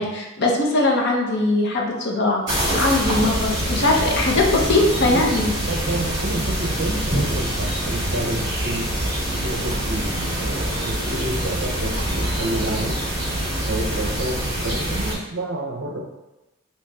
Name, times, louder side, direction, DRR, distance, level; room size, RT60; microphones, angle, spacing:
voice 1, 0.0-2.4 2.7-5.5, left 2 dB, 50° left, -1 dB, 0.6 m, -20 dB
sound 1, 2.5-15.1, right 1 dB, 20° right, 1.4 m, -25 dB
voice 2, 4.9-16.0, right 2 dB, 55° right, 1 dB, 0.6 m, -30 dB
3.0 x 3.0 x 3.3 m, 1.0 s
head